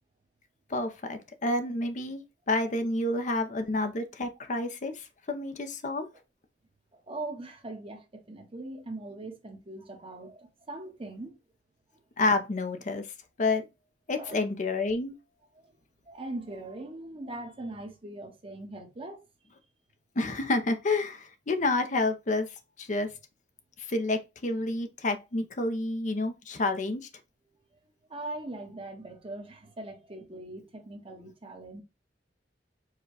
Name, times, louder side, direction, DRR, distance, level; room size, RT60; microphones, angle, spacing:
voice 1, 0.7-2.2 2.5-6.1 12.2-13.1 13.4-13.7 14.1-15.1 20.2-22.5 22.8-23.1 23.9-27.1, left 2 dB, 45° left, 0.6 m, -29 dB
voice 2, 6.9-11.4 14.2-14.4 15.5-15.7 16.1-19.2 28.1-31.8, right 2 dB, 30° right, 1.1 m, -41 dB
4.8 x 2.3 x 4.6 m
head